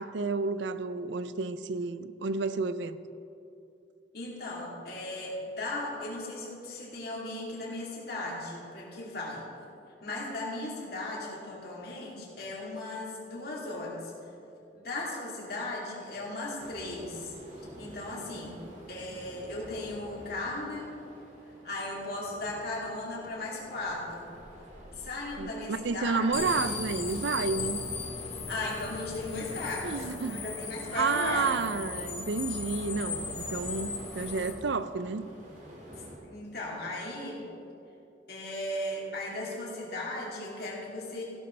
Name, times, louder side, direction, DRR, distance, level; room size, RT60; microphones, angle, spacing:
voice 1, 0.0-3.0 25.4-27.8 29.8-30.5 30.9-35.3, right 4 dB, 75° right, 13 dB, 0.5 m, -31 dB
voice 2, 4.1-9.5 10.0-14.1 14.7-18.6 18.9-20.9 21.6-24.3 24.9-26.5 28.5-31.5 36.2-37.4 38.3-41.2, left 2 dB, 55° left, -4 dB, 2.9 m, -37 dB
sound 1, 16.6-36.2, equal, 40° right, 2.3 m, -49 dB
sound 2, 26.3-34.5, left 4 dB, 35° left, 1.4 m, -37 dB
15.5 x 12.0 x 3.3 m, 2.8 s
head